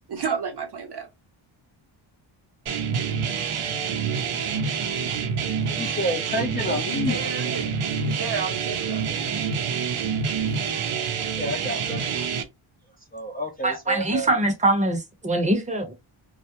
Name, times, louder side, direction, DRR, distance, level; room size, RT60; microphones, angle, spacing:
voice 1, 0.1-1.1 6.6-9.0, right 5 dB, 55° right, 0.9 m, -32 dB
sound 1, 2.7-12.4, right 6 dB, 85° right, 0.7 m, -27 dB
voice 2, 5.7-7.2 11.3-12.2 13.1-14.3, left 1 dB, 20° left, 0.4 m, -29 dB
voice 3, 13.6-15.9, right 1 dB, 15° right, 0.8 m, -23 dB
2.4 x 2.1 x 2.8 m
cardioid pair, 100°, 49 cm